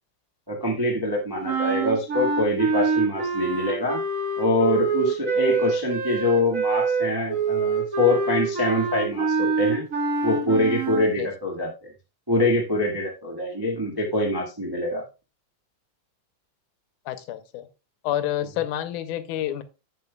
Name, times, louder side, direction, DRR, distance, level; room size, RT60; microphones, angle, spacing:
voice 1, 0.5-4.0 4.4-9.9 10.2-11.7 12.3-15.0, left 1 dB, 20° right, -1 dB, 0.5 m, -24 dB
sound 1, 1.4-11.1, right 5 dB, 55° right, 0.9 m, -25 dB
voice 2, 17.1-17.7 18.0-19.6, left 12 dB, 85° left, 11 dB, 2.2 m, -28 dB
10.5 x 7.5 x 2.3 m, 0.28 s
omnidirectional pair, 3.6 m